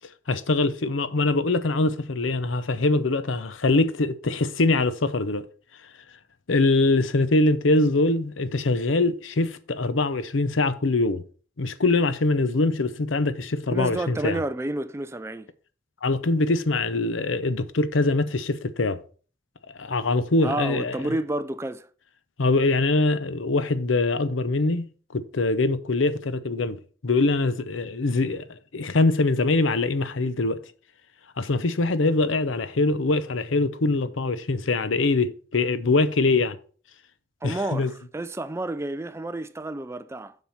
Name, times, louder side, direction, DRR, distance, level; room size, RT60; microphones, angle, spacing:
voice 1, 0.3-5.4 6.5-11.2 11.6-14.4 16.0-19.0 19.7-21.0 22.4-26.8 27.0-28.4 28.7-30.6 31.4-36.6 37.4-37.9, left 2 dB, 90° left, 0.7 m, -23 dB
voice 2, 13.7-15.5 20.4-21.9 37.4-40.3, right 2 dB, 15° right, 0.4 m, -30 dB
7.3 x 5.5 x 5.7 m
head